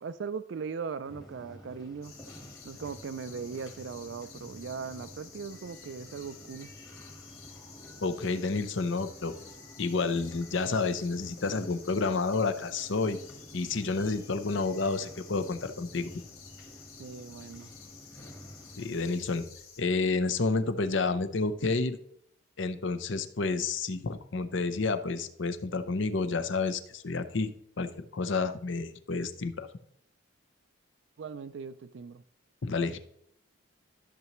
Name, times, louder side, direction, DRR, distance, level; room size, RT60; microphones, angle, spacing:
voice 1, 0.0-2.1 2.6-6.7 17.0-17.7 31.2-32.2, right 5 dB, 60° right, 0.4 m, -39 dB
sound 1, 1.0-18.9, equal, 15° left, 1.3 m, -51 dB
sound 2, 2.0-19.8, left 6 dB, 85° left, 1.9 m, -52 dB
voice 2, 8.0-9.3 9.8-13.2 13.5-16.1 18.8-19.5 19.8-22.0 22.6-29.7 32.6-33.0, left 3 dB, 65° left, 0.7 m, -30 dB
13.5 x 6.7 x 3.0 m
head